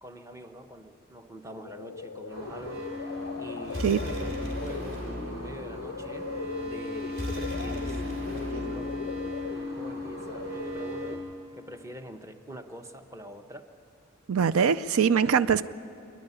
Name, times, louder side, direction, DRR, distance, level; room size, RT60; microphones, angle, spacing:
voice 1, 0.0-2.8 3.4-4.3 4.6-6.3 6.6-9.0 9.6-11.3 11.5-13.7, equal, 15° right, 7 dB, 0.9 m, -45 dB
sound 1, 1.5-11.5, left 5 dB, 60° left, 0.4 m, -40 dB
sound 2, 2.3-11.2, left 1 dB, 65° right, 6.2 m, -37 dB
sound 3, 3.6-9.6, left 1 dB, 50° right, 3.2 m, -38 dB
voice 2, 14.3-15.6, right 7 dB, 90° right, 15 dB, 0.4 m, -22 dB
26.5 x 11.0 x 9.9 m, 2.6 s
head